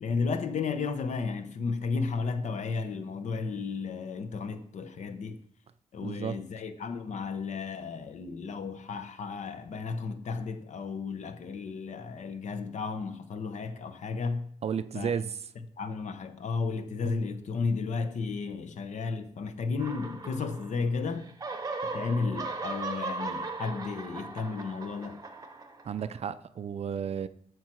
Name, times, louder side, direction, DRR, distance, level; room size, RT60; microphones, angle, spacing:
voice 1, 0.0-5.4 5.9-14.5 14.9-15.1 15.8-21.3 21.9-25.2, left 4 dB, 55° left, 0.8 m, -33 dB
voice 2, 6.0-6.4 14.6-15.5 25.8-27.3, right 7 dB, 45° right, 0.4 m, -33 dB
sound 1, 19.8-20.9 21.2-26.2, right 3 dB, 25° right, 0.8 m, -38 dB
13.5 x 4.7 x 4.5 m
wide cardioid pair, 155°, 14 cm